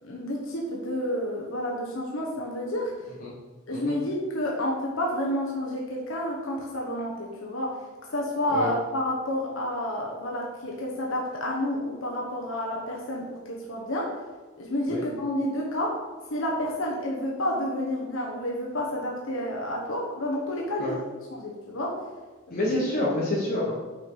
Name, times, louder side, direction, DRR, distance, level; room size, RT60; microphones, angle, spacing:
voice 1, 0.0-3.1 3.7-7.8 8.1-14.2 14.6-16.0 16.3-21.0 21.3-22.0 22.5-22.8, left 1 dB, 65° left, -2 dB, 1.1 m, -30 dB
voice 2, 22.5-23.8, left 1 dB, 45° left, -6 dB, 1.3 m, -28 dB
6.2 x 4.6 x 5.4 m, 1.3 s
head